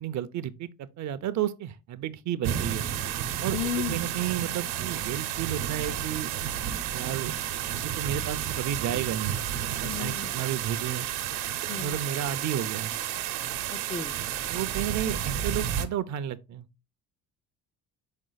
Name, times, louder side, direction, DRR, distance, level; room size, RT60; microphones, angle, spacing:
voice 1, 0.0-2.9 3.4-6.3 6.9-7.3 7.8-9.4 9.8-11.1 11.8-12.9 13.5-13.6 14.5-16.7, right 10 dB, 50° right, 0.6 m, -32 dB
sound 1, 2.4-15.9, right 10 dB, 85° right, 1.0 m, -31 dB
voice 2, 3.5-4.0 9.8-10.4 11.7-12.0 13.7-14.2, left 8 dB, 15° left, 0.4 m, -34 dB
5.4 x 4.5 x 3.9 m
cardioid pair, 115°, 36 cm